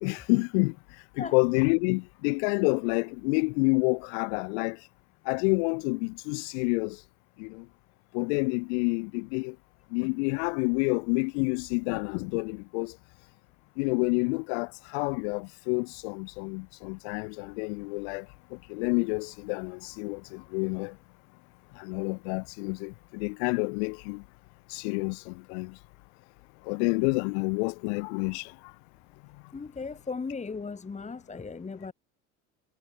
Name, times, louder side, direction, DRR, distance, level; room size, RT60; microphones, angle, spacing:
voice 1, 0.0-0.7 1.2-4.8 5.3-7.0 7.4-7.7 8.1-9.6 9.9-12.9 13.8-18.3 18.5-21.0 21.8-24.2 24.7-25.7 26.7-28.5, left 36 dB, 70° left, 0.6 m, -28 dB
voice 2, 29.5-31.9, left 4 dB, 20° left, 1.7 m, -37 dB
hypercardioid pair, 75°, 35 cm